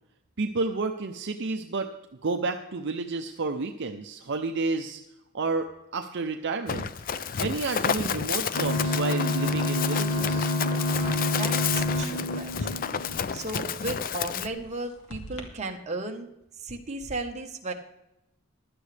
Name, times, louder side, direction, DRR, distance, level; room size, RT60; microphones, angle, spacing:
voice 1, 0.4-1.9 2.2-5.0 5.3-6.9 7.4-10.5, right 3 dB, 55° right, 5 dB, 0.6 m, -30 dB
Run, 6.7-14.5, left 7 dB, 40° left, 0.4 m, -31 dB
sound 1, 8.5-13.6 14.1-14.2 14.5-14.7 15.1-15.4, left 1 dB, 80° left, 2.0 m, -28 dB
voice 2, 10.8-16.3 16.6-17.7, right 2 dB, 30° right, 2 dB, 1.3 m, -36 dB
16.0 x 12.0 x 3.4 m, 0.89 s
head